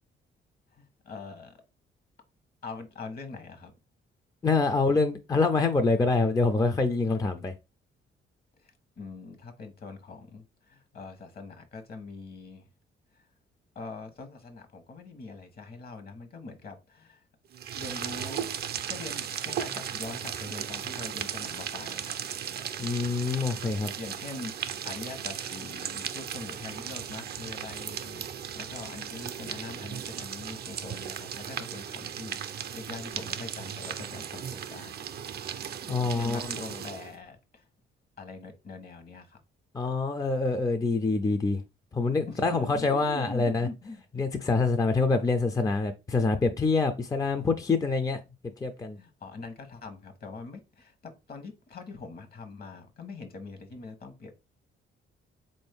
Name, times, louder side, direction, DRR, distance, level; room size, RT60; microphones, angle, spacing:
voice 1, 0.7-1.6 2.6-3.7 8.6-12.7 13.1-13.3 13.7-17.2 17.8-18.5 18.9-22.2 24.0-35.0 36.0-37.6 38.2-39.4 42.3-44.0 49.0-54.3, left 3 dB, 50° left, 1.1 m, -43 dB
voice 2, 4.4-7.5 22.8-23.9 35.8-36.5 39.7-41.6 41.9-43.7 44.2-48.2 48.6-49.0, left 3 dB, 20° left, 0.4 m, -26 dB
sound 1, 17.5-37.2, right 9 dB, 55° right, 0.5 m, -36 dB
3.9 x 2.6 x 3.4 m
cardioid pair, 90°, 20 cm